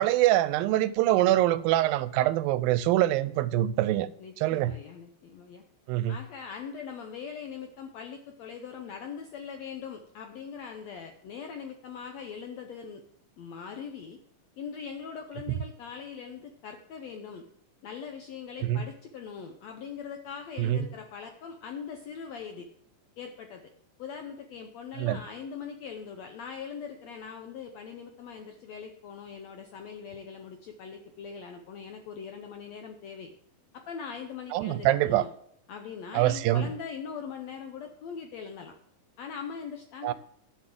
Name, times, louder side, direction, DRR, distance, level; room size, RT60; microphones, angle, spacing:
voice 1, 0.0-4.1 4.4-4.8 5.9-6.2 18.6-18.8 20.6-20.9 25.0-25.2 34.5-35.3 36.1-36.7 40.0-40.1, right 14 dB, 85° right, 2.3 m, -24 dB
voice 2, 4.2-5.6 6.1-13.0 13.4-14.2 14.6-17.4 17.8-22.7 23.2-23.6 24.0-33.3 33.7-35.3 35.7-38.7 39.2-40.1, left 6 dB, 75° left, 1.5 m, -41 dB
11.5 x 5.9 x 7.6 m
omnidirectional pair, 4.1 m